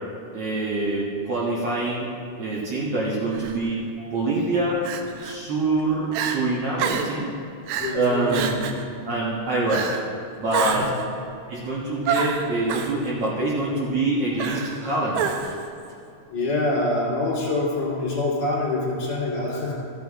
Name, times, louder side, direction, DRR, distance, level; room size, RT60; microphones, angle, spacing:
voice 1, 0.3-2.1 2.4-4.8 5.2-7.3 7.9-8.7 9.1-9.9 10.4-10.9 11.5-15.5, right 2 dB, 55° right, -6 dB, 2.0 m, -25 dB
Crying sobbing, 3.3-3.6 4.8-5.4 5.8-5.9 6.1-6.4 6.8-7.2 7.7-8.0 8.3-8.8 9.7-10.1 10.5-11.0 12.1-12.9 14.4-14.8 15.1-15.7, right 7 dB, 80° right, 2.3 m, -27 dB
voice 2, 7.8-8.4 10.6-10.8 16.3-19.7, left 2 dB, 55° left, -6 dB, 3.5 m, -25 dB
14.5 x 9.3 x 3.6 m, 2.5 s
omnidirectional pair, 3.9 m